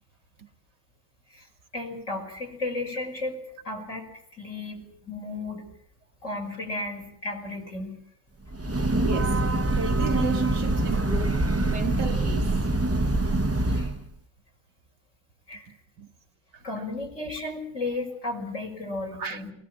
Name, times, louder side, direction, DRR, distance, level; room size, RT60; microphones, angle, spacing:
voice 1, 1.7-3.4 3.6-4.1 4.4-5.6 6.2-8.0 13.7-13.9 15.5-15.7 16.6-19.5, left 2 dB, 40° left, 6.3 m, -34 dB
Breathing / Train, 8.5-14.0, right 2 dB, 20° right, 0.4 m, -24 dB
voice 2, 9.0-12.5 15.7-16.1 16.5-16.6 19.1-19.4, right 5 dB, 65° right, 1.9 m, -35 dB
21.0 x 19.5 x 8.6 m
omnidirectional pair, 2.0 m